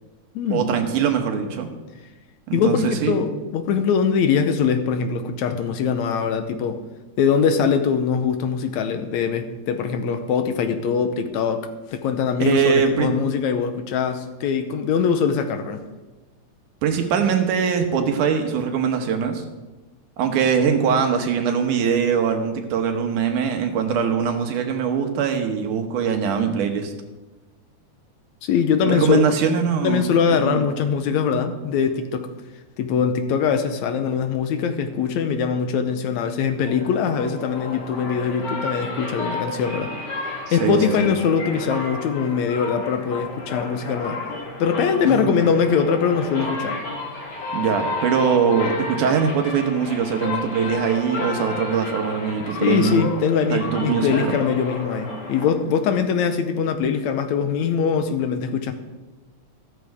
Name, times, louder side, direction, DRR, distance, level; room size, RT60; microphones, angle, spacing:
voice 1, 0.5-1.7 2.5-3.2 12.4-13.1 16.8-19.4 20.2-26.9 28.8-30.1 30.4-30.7 31.1-31.2 40.5-41.1 45.0-45.3 47.5-53.1 53.5-54.3, right 7 dB, 85° right, 5 dB, 2.7 m, -22 dB
voice 2, 2.5-6.8 7.2-15.8 28.4-29.2 29.8-32.3 32.8-40.0 40.5-44.2 44.6-46.8 52.6-58.7, left 6 dB, 75° left, 8 dB, 2.0 m, -22 dB
sound 1, 36.7-56.0, left 2 dB, 50° left, 2.4 m, -32 dB
13.5 x 13.0 x 3.5 m, 1.2 s
omnidirectional pair, 3.5 m